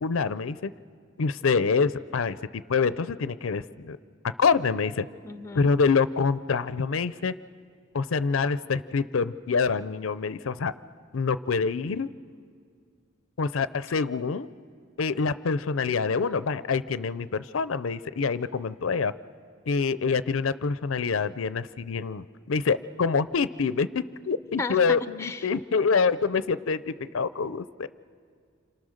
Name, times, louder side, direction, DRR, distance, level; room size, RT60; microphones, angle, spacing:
voice 1, 0.0-0.7 1.2-2.4 2.7-4.0 4.4-5.0 5.5-7.3 7.9-10.7 11.1-12.1 13.4-14.5 15.0-19.1 19.7-27.9, left 5 dB, 85° left, 15 dB, 0.5 m, -26 dB
voice 2, 5.2-5.7 24.6-25.5, left 3 dB, 15° left, 11 dB, 0.6 m, -34 dB
28.5 x 26.5 x 6.5 m, 2.1 s
head